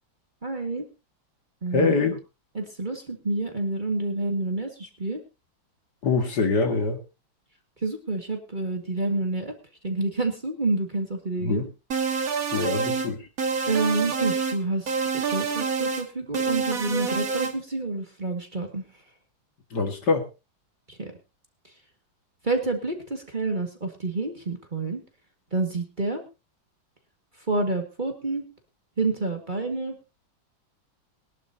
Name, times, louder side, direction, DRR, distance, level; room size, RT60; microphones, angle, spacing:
voice 1, 0.4-0.8 1.6-2.0 2.6-5.2 7.8-9.5 9.8-11.6 13.7-18.8 20.9-21.1 22.4-25.0 25.5-26.2 27.5-28.4 29.0-29.9, right 2 dB, 25° right, 3 dB, 1.9 m, -28 dB
voice 2, 1.7-2.2 6.0-7.0 11.4-11.7 12.5-13.3 19.7-20.2, left 4 dB, 60° left, 5 dB, 2.4 m, -24 dB
sound 1, 11.9-13.1 13.4-14.6 14.9-16.1 16.3-17.5, right 5 dB, 50° right, 2.0 m, -27 dB
21.5 x 11.5 x 2.8 m, 0.29 s
omnidirectional pair, 2.1 m